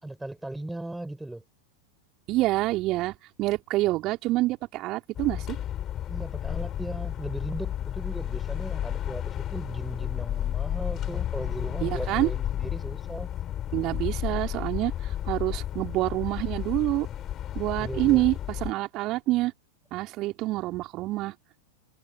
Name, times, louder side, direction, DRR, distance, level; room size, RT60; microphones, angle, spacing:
voice 1, 0.0-1.4 6.1-13.3 17.8-18.2, right 1 dB, 5° right, 5.8 m, -38 dB
voice 2, 2.3-3.1 3.4-5.6 11.8-12.3 13.7-14.9 15.3-17.1 17.5-19.5 19.9-21.3, right 18 dB, 40° right, 4.2 m, -27 dB
sound 1, 5.1-18.7, left 11 dB, 30° left, 3.6 m, -32 dB
figure-of-eight pair, 90°, 0 cm